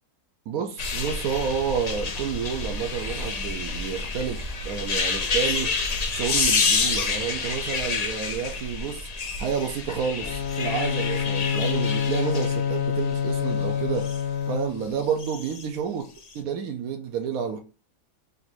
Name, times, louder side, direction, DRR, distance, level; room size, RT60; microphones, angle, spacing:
voice 1, 0.5-16.0 16.3-17.6, right 7 dB, 70° right, 1.1 m, -30 dB
sound 1, 0.8-14.2 15.1-15.6 16.2-16.3, left 4 dB, 55° left, 0.4 m, -28 dB
Bowed string instrument, 10.2-15.0, left 7 dB, 85° left, 1.2 m, -27 dB
4.0 x 2.5 x 4.4 m
omnidirectional pair, 1.6 m